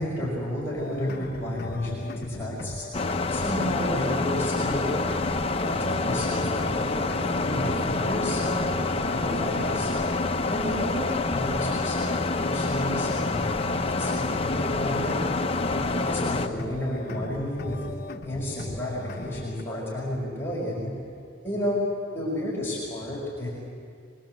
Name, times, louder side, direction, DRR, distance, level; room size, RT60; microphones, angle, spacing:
voice 1, 0.0-2.9 3.3-5.0 5.6-8.7 9.1-9.9 10.5-13.4 13.9-15.2 15.8-17.8 18.2-20.9 21.4-21.8 22.1-23.5, left 1 dB, 15° left, -6 dB, 5.6 m, -31 dB
sound 1, 0.8-19.6, left 1 dB, 55° left, 1.1 m, -38 dB
sound 2, 2.9-16.5, left 3 dB, 30° left, 0.9 m, -27 dB
23.5 x 23.0 x 7.8 m, 2.2 s
head